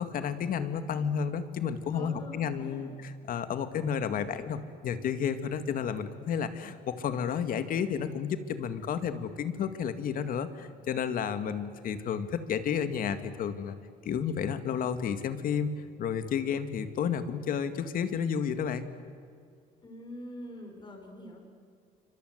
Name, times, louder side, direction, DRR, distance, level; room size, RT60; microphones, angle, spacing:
voice 1, 0.0-13.8 14.1-15.7 16.0-18.9, left 7 dB, 65° left, 10 dB, 2.1 m, -31 dB
voice 2, 1.9-2.9 19.8-21.4, left 1 dB, 30° left, 3 dB, 6.3 m, -45 dB
28.0 x 25.0 x 8.1 m, 2.3 s
cardioid pair, 130°, 16 cm